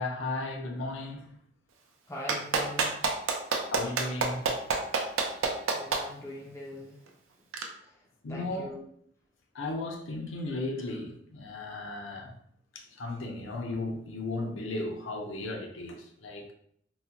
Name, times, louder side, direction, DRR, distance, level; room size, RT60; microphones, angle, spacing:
voice 1, 0.0-1.3 3.7-4.6 5.0-5.1 8.2-8.7 9.5-12.3 12.7-16.5, left 2 dB, 70° left, 0.6 m, -35 dB
voice 2, 2.1-3.0 5.7-7.0 7.8-8.0 8.3-8.9, left 1 dB, 15° left, 0.4 m, -41 dB
Clapping, 2.3-6.0 7.5-7.6, right 4 dB, 85° right, 0.5 m, -27 dB
4.0 x 2.1 x 2.8 m
head